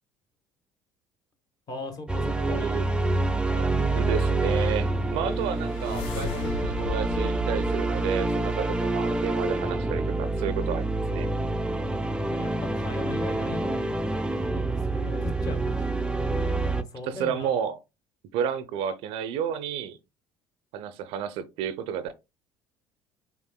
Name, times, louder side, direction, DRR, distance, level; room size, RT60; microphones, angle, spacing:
voice 1, 1.7-2.7 12.3-15.9 16.8-17.5, left 3 dB, 35° left, 1.3 m, -39 dB
sound 1, 2.1-16.8, right 2 dB, 10° right, 0.5 m, -27 dB
voice 2, 2.4-2.9 3.4-11.3 17.0-17.8 18.3-20.0 20.7-22.1, right 8 dB, 55° right, 0.6 m, -31 dB
sound 2, 4.9-9.1, left 6 dB, 55° left, 0.6 m, -37 dB
6.0 x 3.9 x 2.2 m
figure-of-eight pair, 60°, 11 cm